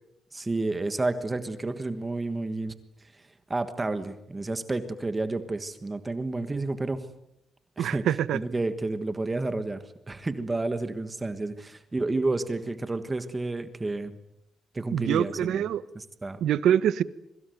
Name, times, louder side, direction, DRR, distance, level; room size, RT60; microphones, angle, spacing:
voice 1, 0.3-2.7 3.1-7.1 7.8-8.0 8.3-9.8 10.1-14.1 14.7-15.6 15.9-16.4, right 2 dB, 15° right, 1.4 m, -30 dB
voice 2, 7.8-8.4 14.9-15.8 16.4-17.0, right 10 dB, 85° right, 1.2 m, -25 dB
26.5 x 23.5 x 9.3 m
cardioid pair, 150°, 0 cm